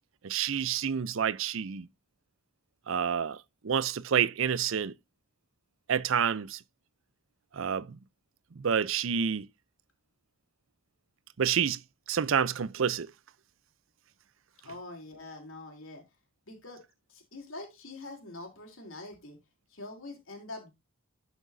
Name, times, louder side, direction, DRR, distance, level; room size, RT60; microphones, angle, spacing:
voice 1, 0.2-1.9 2.9-4.9 5.9-6.6 7.5-8.0 8.6-9.5 11.4-11.8 12.1-13.1, right 7 dB, 65° right, 0.5 m, -28 dB
voice 2, 14.6-16.0 16.5-16.8 17.1-19.4 19.7-20.7, left 2 dB, 65° left, 3.3 m, -44 dB
12.0 x 6.0 x 2.6 m
head